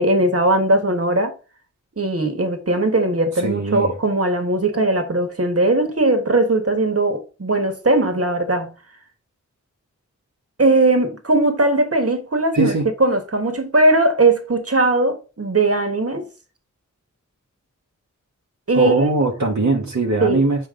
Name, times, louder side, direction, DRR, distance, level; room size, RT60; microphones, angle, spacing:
voice 1, 0.0-1.3 2.0-8.7 10.6-12.7 13.0-16.2 18.7-19.1 20.2-20.4, right 2 dB, 50° right, 1.6 m, -19 dB
voice 2, 3.4-3.9 12.5-12.9 18.7-20.6, right 3 dB, 65° right, 1.2 m, -20 dB
6.9 x 4.7 x 3.8 m
wide cardioid pair, 70°, 31 cm